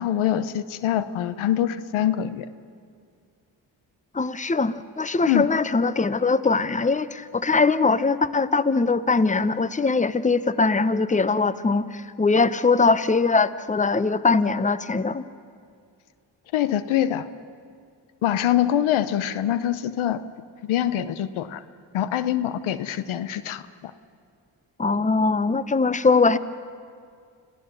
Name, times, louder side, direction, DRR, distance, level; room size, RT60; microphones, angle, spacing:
voice 1, 0.0-2.5 5.3-5.5 16.5-17.3 18.2-20.2 20.6-21.6 21.9-23.9, left 11 dB, 90° left, 14 dB, 0.8 m, -24 dB
voice 2, 4.1-15.2 24.8-26.4, left 4 dB, 15° left, 15 dB, 0.8 m, -21 dB
27.0 x 16.0 x 6.8 m, 2.2 s
supercardioid pair, 50°, 47 cm